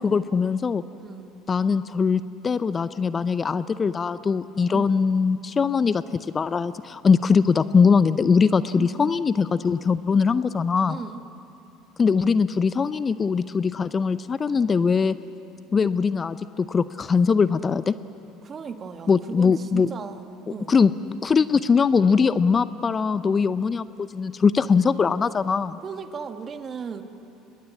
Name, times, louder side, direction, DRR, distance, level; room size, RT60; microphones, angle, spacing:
voice 1, 0.0-0.8 1.5-6.0 6.3-11.0 12.0-15.2 15.7-17.9 19.1-19.9 20.5-25.8, left 5 dB, 30° left, 15 dB, 0.6 m, -21 dB
voice 2, 1.0-1.4 4.7-4.9 8.7-9.1 10.9-11.2 18.4-20.7 25.8-27.0, right 6 dB, 35° right, 8 dB, 1.6 m, -36 dB
22.0 x 20.0 x 8.4 m, 2.8 s
hypercardioid pair, 70°, 0 cm